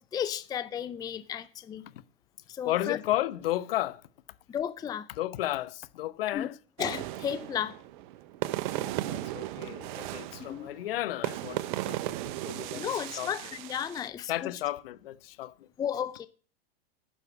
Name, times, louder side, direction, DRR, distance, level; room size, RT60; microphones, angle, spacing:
voice 1, 0.0-1.9 2.5-3.0 4.5-5.1 6.3-6.5 6.8-7.8 10.5-10.7 12.8-14.5 15.8-16.3, left 9 dB, 10° left, 0.5 m, -34 dB
voice 2, 2.6-4.0 5.2-6.6 8.8-12.2 12.4-13.3 14.3-15.7, left 14 dB, 65° left, 1.0 m, -33 dB
sound 1, 6.8-14.1, right 15 dB, 50° right, 0.7 m, -36 dB
11.5 x 4.9 x 8.2 m
hypercardioid pair, 125°, 31 cm